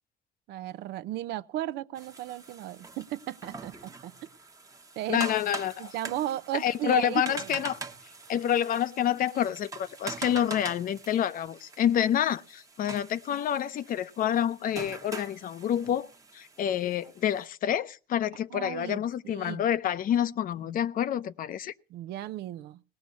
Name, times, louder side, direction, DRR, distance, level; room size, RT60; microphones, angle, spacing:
voice 1, 0.5-4.1 5.0-5.3 5.8-7.6 18.5-19.6 21.9-22.8, right 14 dB, 80° right, 0.6 m, -35 dB
sound 1, 2.0-17.5, right 4 dB, 20° right, 1.0 m, -44 dB
voice 2, 5.1-5.9 6.5-7.8 8.3-16.1 16.3-21.7, left 10 dB, 55° left, 0.7 m, -28 dB
18.5 x 6.3 x 8.3 m
cardioid pair, 110°, 17 cm